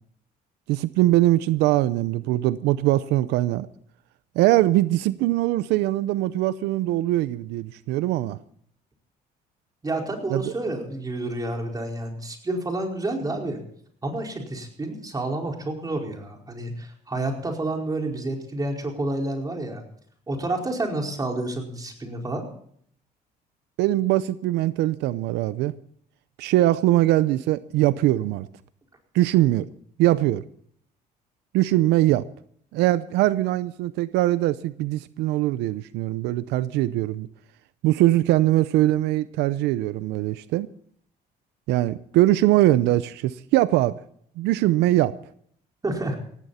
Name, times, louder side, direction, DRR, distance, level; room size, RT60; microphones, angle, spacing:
voice 1, 0.7-3.7 4.4-8.4 10.3-10.4 23.8-25.8 26.4-28.5 29.1-29.7 30.0-30.4 31.5-32.2 32.7-37.3 37.8-40.7 41.7-43.9 44.4-45.1, right 15 dB, 90° right, 15 dB, 0.6 m, -21 dB
voice 2, 9.8-13.6 14.0-19.8 20.3-22.4 45.8-46.2, right 2 dB, 20° right, 1 dB, 4.8 m, -29 dB
18.0 x 15.5 x 4.2 m, 0.63 s
cardioid pair, 110°, 17 cm